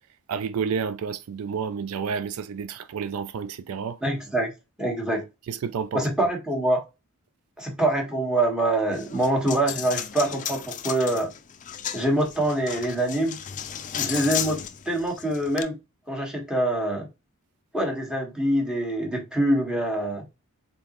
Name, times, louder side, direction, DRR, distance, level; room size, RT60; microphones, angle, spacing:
voice 1, 0.3-4.0 5.5-6.1, right 6 dB, 75° right, 0.4 m, -30 dB
voice 2, 4.0-4.5 4.8-5.2 5.9-6.8 7.6-11.3 11.9-13.4 13.9-15.8 16.1-17.1 17.7-20.2, right 1 dB, 5° right, 1.4 m, -25 dB
Coin (dropping), 8.9-15.6, left 9 dB, 35° left, 0.4 m, -34 dB
3.9 x 3.7 x 2.9 m
head